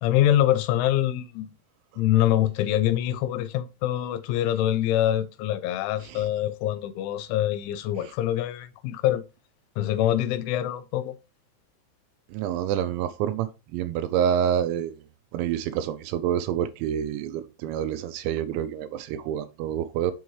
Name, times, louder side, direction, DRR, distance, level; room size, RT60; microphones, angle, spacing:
voice 1, 0.0-1.5 2.0-9.2 9.8-11.2, left 12 dB, 85° left, 2.8 m, -24 dB
voice 2, 12.3-15.0 15.3-20.1, right 9 dB, 85° right, 2.7 m, -27 dB
7.1 x 6.3 x 3.1 m
omnidirectional pair, 5.6 m